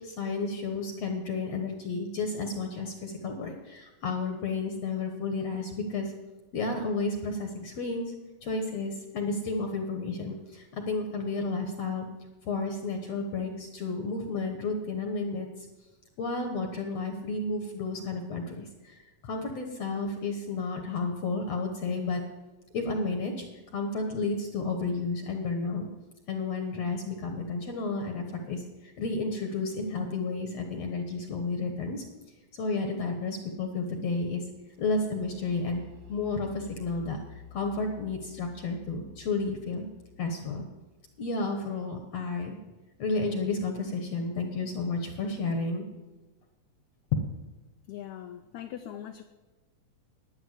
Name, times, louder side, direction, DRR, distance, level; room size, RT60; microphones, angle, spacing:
voice 1, 0.0-6.1 6.5-8.1 8.4-12.1 12.5-15.7 16.2-22.2 22.7-23.5 23.7-25.9 26.3-32.0 32.5-34.4 34.8-35.8 36.1-37.2 37.5-39.9 40.2-40.7 41.2-42.6 43.0-45.8 47.1-47.2, left 3 dB, 60° left, 4 dB, 2.1 m, -32 dB
sound 1, 34.8-42.6, left 7 dB, 65° right, 2.2 m, -51 dB
voice 2, 47.9-49.2, left 10 dB, 75° left, 6 dB, 1.7 m, -41 dB
11.5 x 9.8 x 9.7 m, 1.2 s
omnidirectional pair, 4.0 m